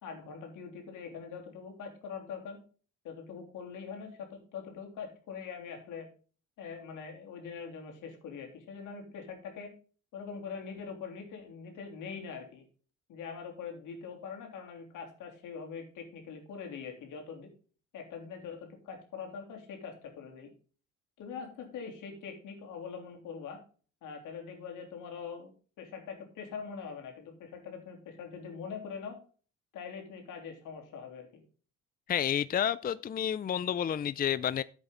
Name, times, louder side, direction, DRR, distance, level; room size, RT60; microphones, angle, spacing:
voice 1, 0.0-2.6 3.0-6.1 6.6-9.7 10.1-12.6 13.1-17.5 17.9-20.5 21.2-23.6 24.0-25.5 25.8-29.2 29.7-31.4, left 6 dB, 85° left, 3.3 m, -43 dB
voice 2, 32.1-34.6, left 9 dB, 30° left, 0.4 m, -30 dB
11.0 x 8.1 x 3.8 m
cardioid pair, 90°, 30 cm